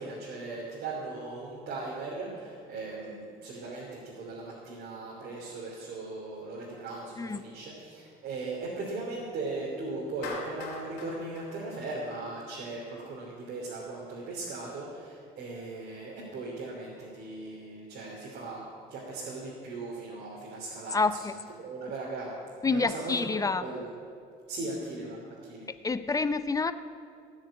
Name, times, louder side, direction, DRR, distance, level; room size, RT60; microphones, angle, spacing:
voice 1, 0.0-18.6 18.9-21.2 21.6-22.3 22.6-23.9 24.5-25.7, right 3 dB, 70° right, -4 dB, 2.9 m, -38 dB
Clapping, 10.2-12.5, left 4 dB, 80° left, 2.6 m, -42 dB
voice 2, 20.9-21.3 22.6-23.6 25.8-26.7, left 4 dB, 20° left, 12 dB, 0.5 m, -28 dB
17.5 x 6.5 x 8.7 m, 2.4 s
cardioid pair, 110°, 17 cm